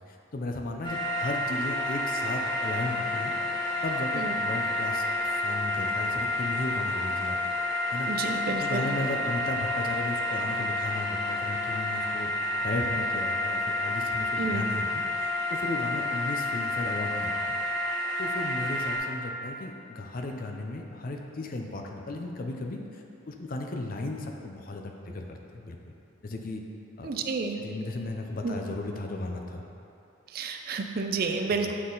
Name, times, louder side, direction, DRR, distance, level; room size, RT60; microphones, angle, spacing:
voice 1, 0.1-3.3 3.8-7.4 7.9-12.3 12.6-14.9 15.2-17.6 18.2-25.9 26.2-26.6 27.0-27.3 27.6-29.6 31.6-31.7, left 2 dB, 45° left, 3 dB, 0.5 m, -35 dB
sound 1, 0.8-19.0, left 1 dB, 20° left, 1.3 m, -29 dB
voice 2, 8.1-8.9 14.4-14.7 27.0-27.6 28.4-28.6 30.3-31.7, right 4 dB, 45° right, 5 dB, 0.4 m, -30 dB
8.6 x 3.8 x 3.9 m, 2.8 s
head